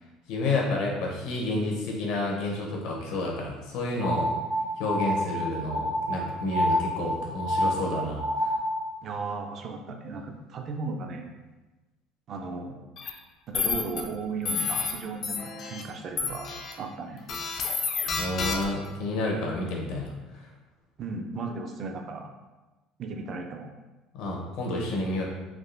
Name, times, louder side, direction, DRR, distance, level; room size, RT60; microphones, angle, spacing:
voice 1, 0.3-4.3 4.8-8.5 18.2-20.1 24.1-25.2, left 2 dB, 70° left, -1 dB, 0.8 m, -30 dB
sound 1, 4.0-8.9, equal, 70° right, 1.3 m, -28 dB
voice 2, 9.0-11.3 12.3-12.8 13.5-16.5 16.8-17.2 21.0-22.3 23.0-23.7, right 4 dB, 40° right, 4 dB, 0.4 m, -35 dB
sound 2, 13.0-13.1 13.5-14.0 14.4-14.9 15.2-15.8 16.2-16.7 17.3-18.9, left 5 dB, 40° left, 0.4 m, -30 dB
3.4 x 2.3 x 2.5 m, 1.1 s
cardioid pair, 150°, 0 cm